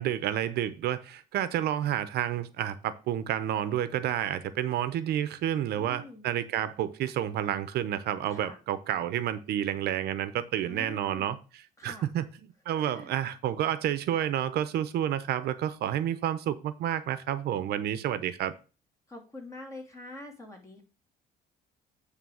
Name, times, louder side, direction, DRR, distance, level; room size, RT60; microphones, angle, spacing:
voice 1, 0.0-12.3 12.7-18.5, right 11 dB, 70° right, 0.8 m, -30 dB
voice 2, 5.8-6.3 8.3-8.6 10.7-11.4 11.8-12.1 12.8-13.1 19.1-20.8, left 1 dB, 20° left, 2.9 m, -45 dB
9.2 x 3.4 x 6.3 m
cardioid pair, 110°, 17 cm